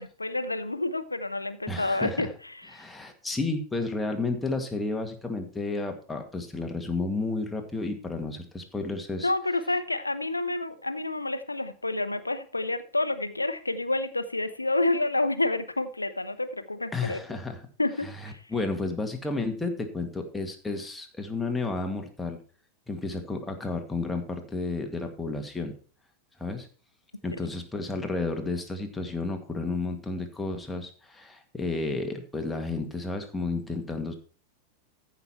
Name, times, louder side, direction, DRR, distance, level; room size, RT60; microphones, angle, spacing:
voice 1, 0.0-2.8 9.2-17.2 17.8-18.5, left 2 dB, 85° left, 12 dB, 0.7 m, -29 dB
voice 2, 1.7-2.3 2.7-9.3 16.9-17.6 18.5-22.4 22.9-25.8 26.4-26.7 27.2-34.1, left 3 dB, 10° left, 4 dB, 1.9 m, -32 dB
14.0 x 5.9 x 4.5 m, 0.40 s
figure-of-eight pair, 90°, 0 cm